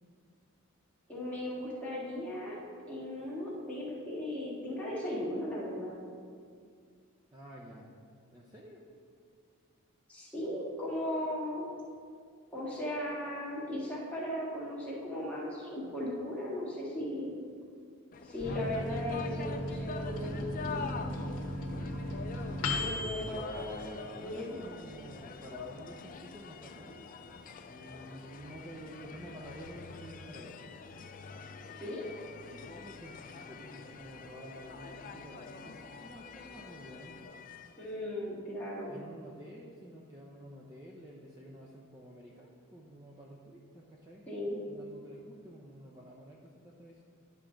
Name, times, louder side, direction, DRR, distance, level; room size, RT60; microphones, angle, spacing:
voice 1, 1.1-2.6 2.9-6.0 10.1-11.7 12.5-17.3 18.2-21.1 22.7-24.6 31.8-32.0 37.8-38.9 44.3-44.6, left 1 dB, 5° left, -7 dB, 1.8 m, -37 dB
voice 2, 7.3-8.0 8.3-8.8 23.0-23.2 24.0-27.0 27.6-30.7 32.5-37.2 38.9-44.3 44.7-47.0, equal, 15° right, -3 dB, 0.6 m, -50 dB
sound 1, 18.1-37.9, left 5 dB, 35° left, 0.4 m, -46 dB
Microwave oven, 18.4-24.5 24.9-25.0 25.2-25.9, left 1 dB, 60° left, 1.1 m, -37 dB
10.5 x 5.9 x 3.8 m, 2.2 s
head